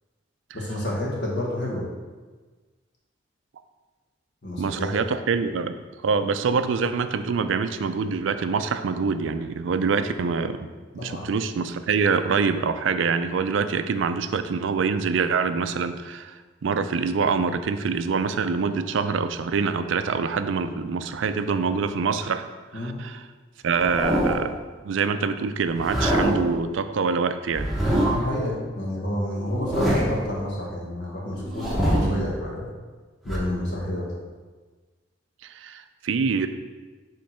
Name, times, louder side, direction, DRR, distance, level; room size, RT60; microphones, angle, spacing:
voice 1, 0.5-1.8 4.4-4.9 11.0-11.2 22.7-23.0 28.1-32.7 33.2-34.1, left 1 dB, 65° left, -3 dB, 1.5 m, -29 dB
voice 2, 4.6-5.8 6.0-10.7 10.9-22.4 22.7-23.2 23.6-24.6 24.8-27.7 31.9-32.3 35.4-36.5, right 5 dB, 80° right, 10 dB, 0.4 m, -25 dB
sound 1, 23.7-24.6 25.7-26.6 27.5-28.4 29.4-30.3 31.4-32.2 33.3-33.4, equal, ahead, 0.9 m, -25 dB
5.3 x 3.8 x 5.6 m, 1.3 s
head